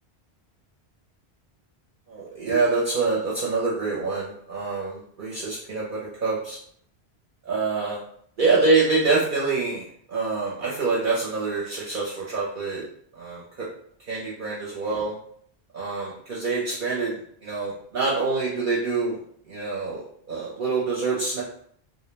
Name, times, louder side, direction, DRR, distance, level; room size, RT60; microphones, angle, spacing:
voice 1, 2.1-6.6 7.5-8.0 8.4-12.8 13.2-13.7 14.0-15.1 15.7-19.2 19.5-21.4, right 3 dB, 60° right, -5 dB, 0.7 m, -26 dB
2.2 x 2.1 x 3.1 m, 0.63 s
omnidirectional pair, 1.1 m